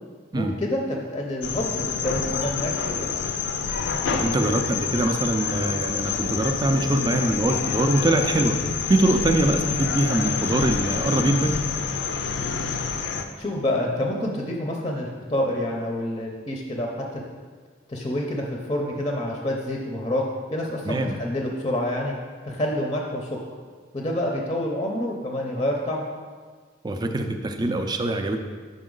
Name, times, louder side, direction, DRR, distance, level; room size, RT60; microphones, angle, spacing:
voice 1, 0.3-3.2 13.4-17.2 17.9-20.2 20.5-22.1 22.4-23.4 23.9-26.1, left 1 dB, 25° left, 0 dB, 0.6 m, -27 dB
sound 1, 1.4-13.2, left 5 dB, 80° left, 0.5 m, -28 dB
voice 2, 4.1-8.6 8.9-11.5 20.8-21.2 26.8-28.4, right 1 dB, 25° right, 5 dB, 0.4 m, -23 dB
6.1 x 5.2 x 3.8 m, 1.6 s
head